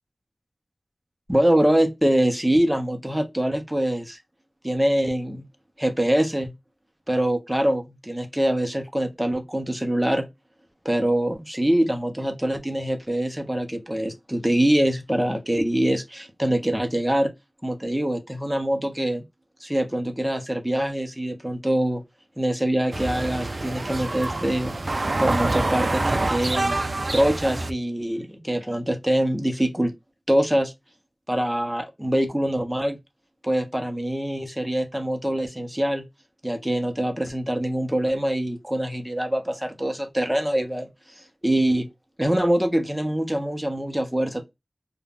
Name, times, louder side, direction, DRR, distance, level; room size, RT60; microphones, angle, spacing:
voice 1, 1.3-4.2 4.6-5.5 5.8-6.5 7.1-10.3 10.8-17.3 17.6-19.2 19.6-22.0 22.4-24.7 25.2-29.9 30.3-30.7 31.3-33.0 33.4-36.1 36.4-40.9 41.2-41.9 42.2-44.4, right 1 dB, 10° right, 0.6 m, -24 dB
sound 1, 22.9-27.7, right 2 dB, 50° right, 0.3 m, -26 dB
2.4 x 2.1 x 3.4 m
wide cardioid pair, 75°, 0 cm